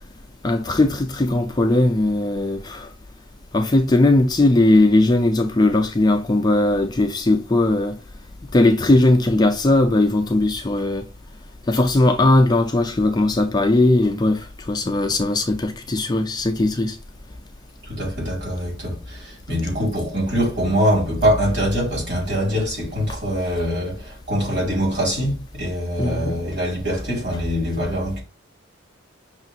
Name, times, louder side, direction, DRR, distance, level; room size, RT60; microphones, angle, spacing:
voice 1, 0.4-2.9 3.5-8.0 8.5-11.0 11.7-17.0 26.0-26.3, left 2 dB, 20° left, 0.4 m, -18 dB
voice 2, 17.9-28.2, equal, 55° right, 2.5 m, -23 dB
5.9 x 2.4 x 2.8 m
head